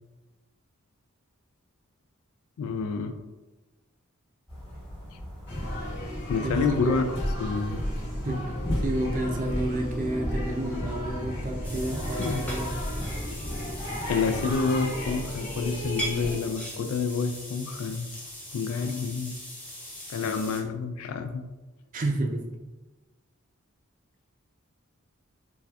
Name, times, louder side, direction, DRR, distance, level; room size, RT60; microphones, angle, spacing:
voice 1, 2.6-3.2 6.3-7.8 12.2-12.4 14.1-18.1 18.5-19.4 20.1-21.4, left 4 dB, 85° left, 8 dB, 0.3 m, -28 dB
sound 1, 4.5-13.3, equal, 25° left, 1.2 m, -42 dB
sound 2, 5.5-16.4, equal, 55° left, 1.2 m, -33 dB
voice 2, 6.4-7.0 8.2-8.4 8.8-12.8 21.9-22.7, right 1 dB, 40° right, 3 dB, 0.4 m, -30 dB
sound 3, 11.6-20.6, equal, 5° left, 0.6 m, -40 dB
4.0 x 2.3 x 2.3 m, 1.2 s
head